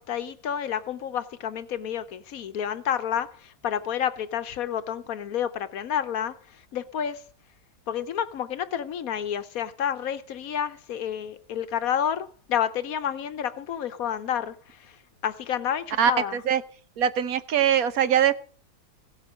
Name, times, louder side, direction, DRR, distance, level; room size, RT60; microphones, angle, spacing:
voice 1, 0.0-6.4 6.7-7.2 7.9-15.0 15.2-16.4, left 9 dB, 65° left, 1.2 m, -30 dB
voice 2, 16.0-16.6 17.0-18.3, right 9 dB, 65° right, 1.2 m, -22 dB
16.5 x 8.3 x 6.2 m
omnidirectional pair, 1.7 m